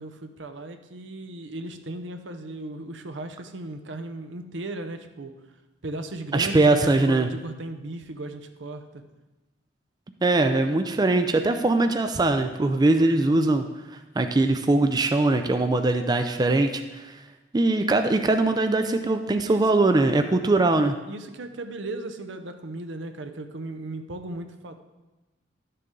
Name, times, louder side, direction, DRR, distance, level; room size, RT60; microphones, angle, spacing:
voice 1, 0.0-5.3 5.8-9.0 19.4-19.8 21.1-24.7, right 2 dB, 75° right, 7 dB, 0.7 m, -36 dB
voice 2, 6.3-7.3 10.2-13.7 14.2-17.1 17.5-21.0, right 2 dB, 20° right, 7 dB, 0.4 m, -21 dB
11.5 x 6.7 x 3.7 m, 1.1 s
head